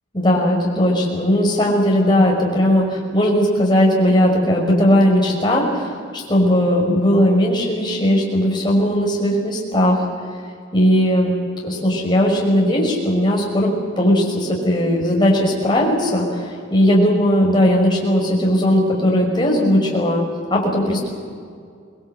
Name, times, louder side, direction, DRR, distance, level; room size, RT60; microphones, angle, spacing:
voice 1, 0.1-10.0 10.7-11.3 11.6-13.7 14.0-20.2 20.5-21.1, equal, 25° left, -2 dB, 5.6 m, -17 dB
25.5 x 20.5 x 7.9 m, 2.2 s
head